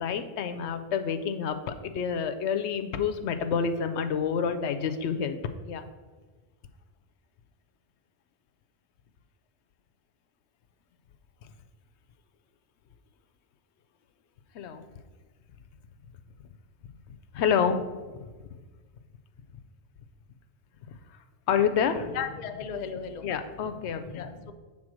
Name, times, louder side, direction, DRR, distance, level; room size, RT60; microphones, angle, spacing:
voice 1, 0.0-5.4 5.7-5.9 14.5-14.9 17.3-18.0 21.5-22.2 23.2-24.2, left 7 dB, 80° left, 8 dB, 0.8 m, -28 dB
voice 2, 22.1-23.3 23.7-24.5, left 6 dB, 50° left, 7 dB, 0.6 m, -36 dB
7.5 x 3.7 x 6.2 m, 1.4 s
omnidirectional pair, 1.1 m